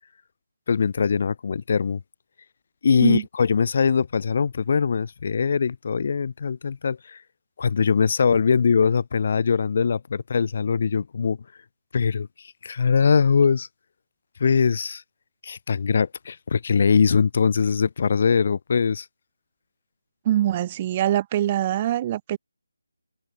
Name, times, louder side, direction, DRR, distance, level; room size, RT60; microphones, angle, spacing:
voice 1, 0.7-2.0 2.8-7.2 7.6-11.4 11.9-13.7 14.4-15.0 15.4-19.1, left 6 dB, 40° left, 1.4 m, -22 dB
voice 2, 20.2-22.4, right 12 dB, 20° right, 3.0 m, -23 dB
figure-of-eight pair, 155°, 0 cm